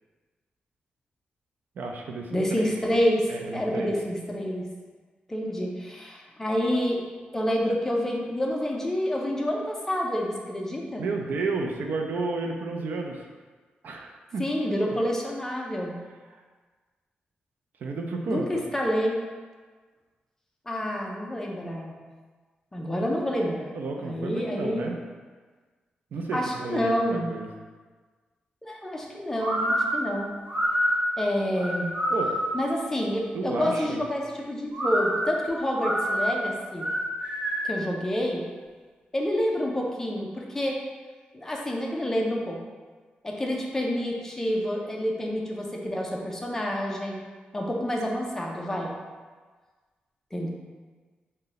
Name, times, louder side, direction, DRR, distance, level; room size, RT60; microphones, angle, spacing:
voice 1, 1.8-2.7 3.3-3.9 11.0-13.3 13.8-14.4 17.8-18.6 23.7-25.0 26.1-27.5 32.1-32.3 33.3-34.0, right 3 dB, 65° right, 2 dB, 0.4 m, -32 dB
voice 2, 2.3-4.7 5.3-7.0 7.3-11.0 14.4-16.0 18.3-19.2 20.7-21.9 22.7-24.9 26.3-27.3 28.6-30.3 31.2-31.9 32.5-36.9 37.6-38.4 39.1-40.8 41.3-42.6 43.2-47.2 47.5-48.9 50.3-50.5, equal, 15° left, -1 dB, 0.4 m, -28 dB
sound 1, 29.4-32.7 34.7-37.8, equal, 40° right, 0.9 m, -27 dB
3.8 x 2.1 x 3.9 m, 1.4 s
wide cardioid pair, 150°, 3 cm